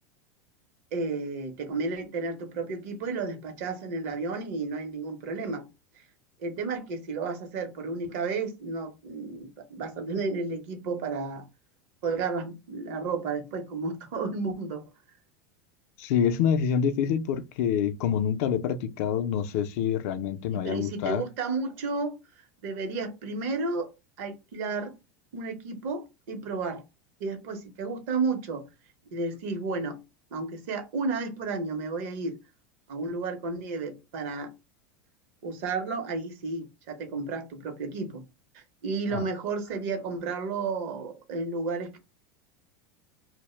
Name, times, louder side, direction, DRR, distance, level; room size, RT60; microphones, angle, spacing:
voice 1, 0.9-5.7 6.4-11.5 12.0-14.8 20.5-22.2 22.6-23.9 24.2-24.9 25.3-26.8 27.2-28.6 29.1-30.0 30.3-32.4 32.9-34.5 35.4-38.2 38.5-42.0, right 4 dB, 65° right, 0.7 m, -32 dB
voice 2, 16.0-21.2 39.1-39.3, left 8 dB, 65° left, 0.3 m, -26 dB
2.0 x 2.0 x 3.0 m
hypercardioid pair, 105°, 9 cm